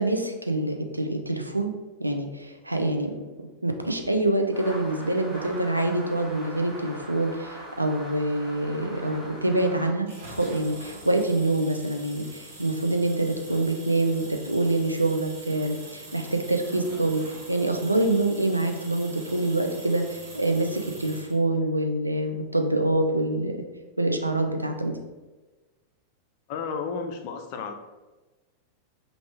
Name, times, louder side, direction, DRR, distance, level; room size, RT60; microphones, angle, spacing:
voice 1, 0.0-1.7 2.0-3.1 3.6-17.2 17.5-23.6 24.0-24.9, right 2 dB, 85° right, 4 dB, 0.4 m, -26 dB
sound 1, 4.5-9.9, right 1 dB, 5° right, 1.2 m, -41 dB
sound 2, 10.1-21.4, right 2 dB, 60° right, 1.0 m, -44 dB
voice 2, 26.5-27.7, left 5 dB, 45° left, 6 dB, 0.4 m, -32 dB
3.3 x 2.4 x 3.4 m, 1.2 s
figure-of-eight pair, 90°, 0 cm